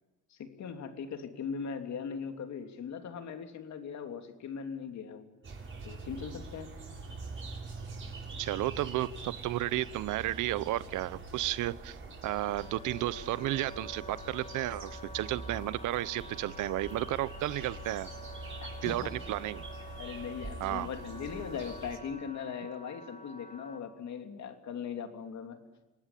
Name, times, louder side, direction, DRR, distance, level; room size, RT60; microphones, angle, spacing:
voice 1, 0.3-5.3 5.8-6.7 18.6-19.1 20.0-25.6, left 6 dB, 65° left, 6 dB, 3.1 m, -39 dB
sound 1, 5.4-22.0, right 3 dB, 40° right, 7.2 m, -44 dB
voice 2, 8.4-12.0 12.2-18.1 18.8-19.6 20.6-20.9, right 15 dB, 90° right, 18 dB, 0.9 m, -33 dB
Wind instrument woodwind instrument, 12.2-23.8, left 3 dB, 20° left, 5.8 m, -49 dB
26.5 x 19.5 x 10.0 m, 1.1 s
cardioid pair, 90°, 30 cm